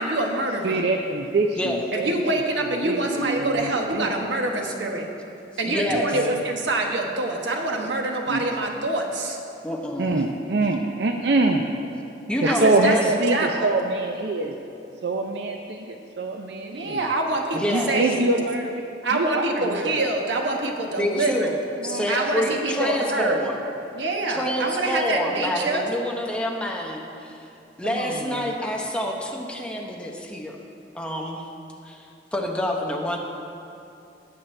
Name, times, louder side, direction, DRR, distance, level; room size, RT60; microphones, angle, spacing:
voice 1, 0.0-0.8 1.9-5.1 5.6-9.4 12.4-13.7 16.7-18.3 19.0-21.5 22.1-23.4 23.9-25.9, right 2 dB, 80° right, 2 dB, 1.2 m, -25 dB
voice 2, 0.6-2.3 2.8-4.3 5.9-6.4 8.3-8.4 10.0-11.7 12.4-14.5 15.0-17.0 17.5-18.8 19.1-19.9 21.8-22.5 27.8-28.5, right 2 dB, 65° right, 3 dB, 0.5 m, -25 dB
voice 3, 5.6-6.1 9.6-10.2 12.3-13.0 17.5-18.0 21.0-21.6 21.8-23.6 24.3-27.4 27.8-30.6 30.9-31.5 31.8-32.1 32.3-33.2, equal, 5° left, 0 dB, 0.9 m, -27 dB
18.0 x 7.4 x 3.3 m, 2.7 s
head